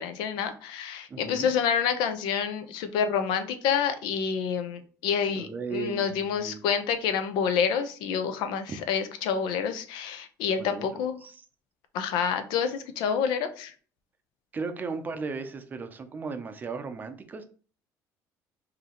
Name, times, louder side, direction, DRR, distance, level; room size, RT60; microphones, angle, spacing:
voice 1, 0.0-11.2 11.9-13.7, left 7 dB, 85° left, 9 dB, 0.7 m, -28 dB
voice 2, 1.1-1.5 5.4-6.6 10.6-10.9 11.2-11.4 14.5-17.4, right 4 dB, 25° right, 8 dB, 0.5 m, -36 dB
5.2 x 2.8 x 2.9 m, 0.41 s
cardioid pair, 145°, 7 cm